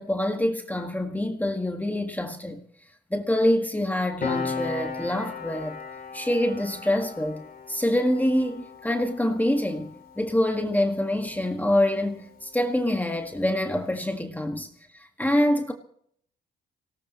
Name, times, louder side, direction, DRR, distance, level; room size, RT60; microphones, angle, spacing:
voice 1, 0.0-2.6 3.1-5.8 6.1-14.7 14.9-15.7, left 1 dB, 10° left, 1.7 m, -26 dB
Piano, 4.2-11.2 11.5-11.7, left 5 dB, 45° left, 2.8 m, -36 dB
24.5 x 18.0 x 3.0 m
cardioid pair, 90°, 20 cm